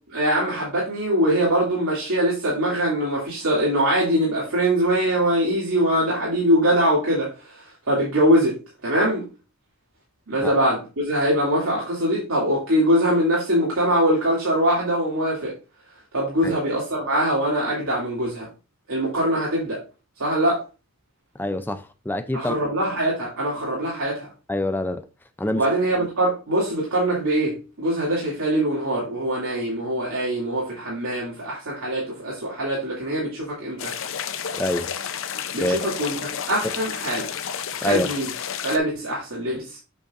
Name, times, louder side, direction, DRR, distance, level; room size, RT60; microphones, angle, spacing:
voice 1, 0.1-8.5 8.8-9.2 10.3-15.5 16.1-18.5 18.9-19.8 20.2-20.6 22.3-24.3 25.6-33.9 35.5-37.3 37.8-38.3 38.6-39.8, right 1 dB, 80° right, 2.6 m, -23 dB
voice 2, 21.4-22.6 24.5-25.0 25.4-25.6 34.6-34.9 35.6-35.9 37.8-38.1, left 1 dB, 10° left, 0.4 m, -25 dB
sound 1, 33.8-38.8, left 8 dB, 60° left, 0.7 m, -31 dB
8.1 x 6.7 x 2.5 m
head